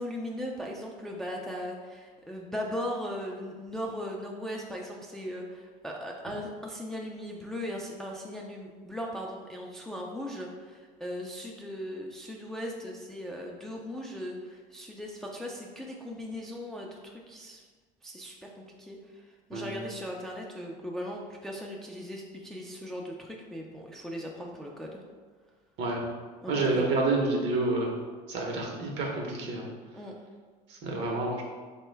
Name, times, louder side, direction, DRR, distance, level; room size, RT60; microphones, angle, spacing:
voice 1, 0.0-17.6 18.0-19.2 19.5-25.0 26.4-27.1 29.9-30.1, equal, ahead, -1 dB, 0.4 m, -38 dB
voice 2, 26.5-27.9 28.3-29.7 30.7-31.4, right 2 dB, 55° right, 0 dB, 0.8 m, -28 dB
3.6 x 2.2 x 3.2 m, 1.5 s
hypercardioid pair, 80°, 21 cm